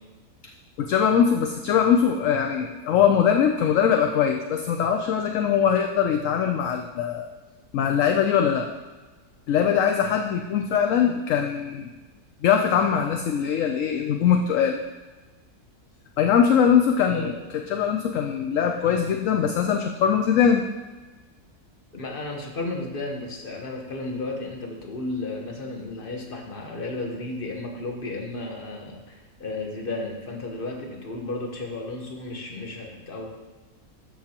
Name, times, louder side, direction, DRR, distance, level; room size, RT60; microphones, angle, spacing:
voice 1, 0.8-7.3 7.7-8.7 9.5-11.9 12.4-14.8 16.2-17.3 17.7-20.6, left 8 dB, 65° left, 4 dB, 0.9 m, -21 dB
voice 2, 17.1-17.4 21.9-33.3, left 2 dB, 40° left, 1 dB, 1.3 m, -33 dB
12.5 x 5.9 x 2.9 m, 1.2 s
omnidirectional pair, 1.6 m